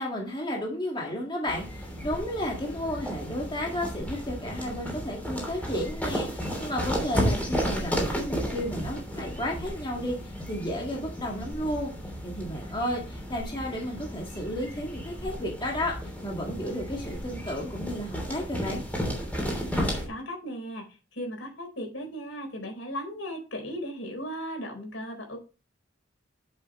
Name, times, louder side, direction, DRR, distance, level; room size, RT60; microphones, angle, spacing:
voice 1, 0.0-11.9 12.2-18.8, equal, 25° left, -1 dB, 1.8 m, -33 dB
sound 1, 1.5-20.1, equal, 10° left, 3.1 m, -33 dB
voice 2, 20.1-20.9 21.1-25.4, equal, 75° left, 3 dB, 4.2 m, -36 dB
10.5 x 6.6 x 3.1 m, 0.32 s
head